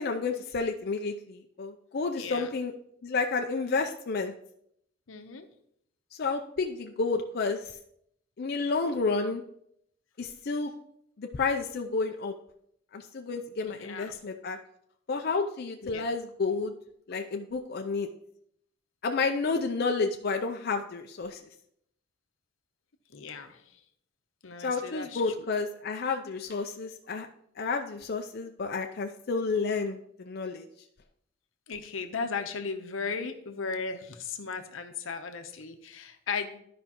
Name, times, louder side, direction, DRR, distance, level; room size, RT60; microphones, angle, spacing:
voice 1, 0.0-2.7 3.0-4.3 6.2-7.8 8.4-9.4 10.2-10.7 11.2-12.3 12.9-14.6 15.1-16.7 17.1-18.1 19.0-21.4 24.6-27.3 27.6-30.6, left 4 dB, 50° left, 3 dB, 0.5 m, -30 dB
voice 2, 2.1-2.5 5.1-5.5 13.7-14.1 15.8-16.0 23.1-23.6 24.4-25.3 31.7-36.6, left 5 dB, 80° left, 7 dB, 0.8 m, -36 dB
12.5 x 5.1 x 3.0 m, 0.71 s
head